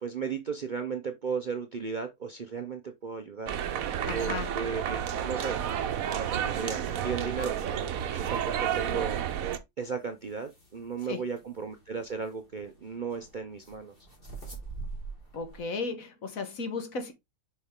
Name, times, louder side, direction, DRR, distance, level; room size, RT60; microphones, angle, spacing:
voice 1, 0.0-3.5 4.1-9.2 9.8-13.9, right 5 dB, 45° right, 0.6 m, -35 dB
sound 1, 3.5-9.6, right 9 dB, 65° right, 1.1 m, -31 dB
voice 2, 4.1-4.5 11.1-11.2 15.3-17.1, left 4 dB, 60° left, 1.6 m, -35 dB
sound 2, 9.8-15.6, right 3 dB, 35° left, 2.6 m, -45 dB
6.8 x 4.8 x 3.6 m
omnidirectional pair, 1.7 m